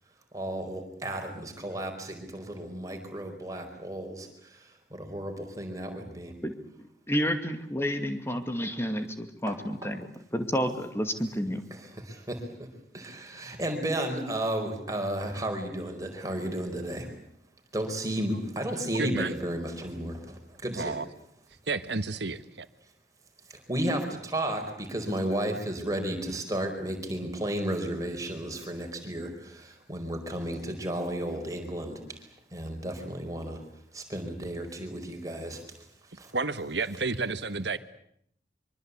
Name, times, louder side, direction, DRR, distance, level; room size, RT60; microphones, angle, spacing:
voice 1, 0.3-6.3 9.5-9.6 11.7-12.7 12.9-17.1 17.7-21.0 23.5-33.6 33.9-35.7 36.2-36.3, right 1 dB, 20° right, 4.8 m, -33 dB
voice 2, 7.1-10.1 10.3-11.6, equal, 15° left, 2.3 m, -30 dB
voice 3, 19.0-19.3 20.7-21.1 21.7-22.7 36.3-37.8, right 3 dB, 75° right, 1.4 m, -31 dB
24.5 x 24.5 x 8.3 m
head